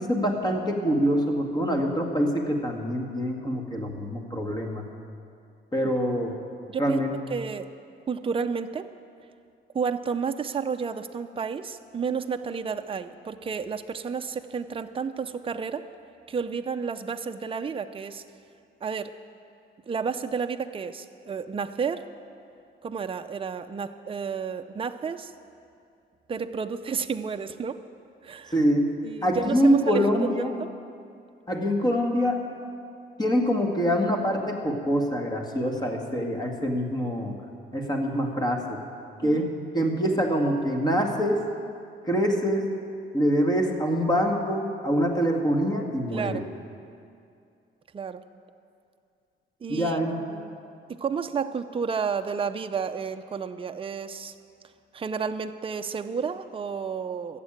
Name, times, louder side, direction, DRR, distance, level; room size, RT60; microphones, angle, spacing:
voice 1, 0.0-4.9 5.7-6.3 6.8-7.1 28.5-28.9 29.2-30.5 31.5-32.4 33.2-37.4 37.7-38.8 39.2-41.4 42.0-42.7 43.1-46.4 49.7-50.2, equal, 20° left, 2 dB, 2.0 m, -25 dB
voice 2, 6.7-7.0 7.3-7.7 8.1-8.9 9.7-15.9 16.3-18.2 18.8-19.2 19.9-22.1 22.8-25.3 26.3-27.8 28.2-28.6 29.0-30.7 39.2-39.4 46.1-46.4 47.9-48.2 49.6-50.0 50.3-50.6 50.9-54.3 54.9-57.4, right 6 dB, 25° right, 8 dB, 0.6 m, -31 dB
14.0 x 7.5 x 8.9 m, 2.4 s
cardioid pair, 90°, 20 cm